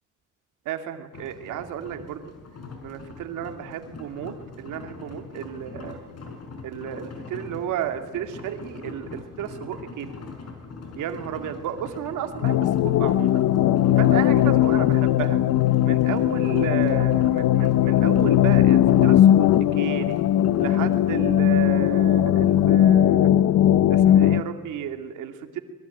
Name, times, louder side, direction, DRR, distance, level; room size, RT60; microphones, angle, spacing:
voice 1, 0.6-2.3 2.8-6.0 6.6-10.1 11.0-13.5 14.0-15.4 15.8-20.2 20.6-23.3 23.9-25.6, right 10 dB, 90° right, 6 dB, 2.5 m, -33 dB
sound 1, 1.1-21.0, left 4 dB, 55° left, 5.9 m, -42 dB
sound 2, 12.4-24.4, left 12 dB, 80° left, 0.9 m, -19 dB
25.0 x 22.0 x 9.2 m, 1.2 s
cardioid pair, 90°, 30 cm